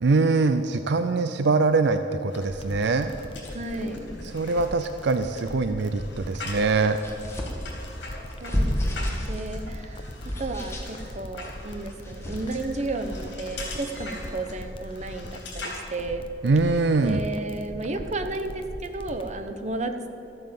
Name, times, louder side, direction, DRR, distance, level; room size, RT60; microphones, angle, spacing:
voice 1, 0.0-3.1 4.3-7.0 16.4-17.2, right 3 dB, 70° right, 9 dB, 0.5 m, -23 dB
sound 1, 2.3-15.8, left 2 dB, 80° left, 3.6 m, -42 dB
sound 2, 2.5-19.3, left 1 dB, 30° left, 1.0 m, -40 dB
voice 2, 3.5-4.1 8.4-16.2 17.0-20.1, right 2 dB, 40° right, 7 dB, 1.0 m, -33 dB
sound 3, 6.9-13.2, equal, 15° left, 2.0 m, -32 dB
13.5 x 8.8 x 7.6 m, 3.0 s
head